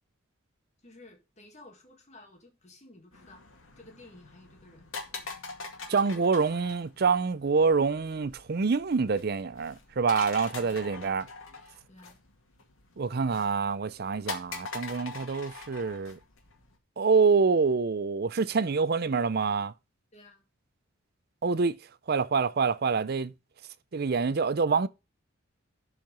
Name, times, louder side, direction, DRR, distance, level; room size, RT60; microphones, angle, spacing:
voice 1, 0.8-3.4 3.8-4.9 10.5-10.8 11.9-12.2 20.1-20.4, left 2 dB, 35° left, 2.0 m, -53 dB
sound 1, 3.1-16.8, left 4 dB, 75° left, 2.2 m, -44 dB
voice 2, 5.9-11.3 13.0-16.2 17.0-19.7 21.4-21.8 22.1-23.3 23.9-24.9, right 5 dB, 45° right, 0.5 m, -26 dB
12.0 x 4.7 x 5.3 m
head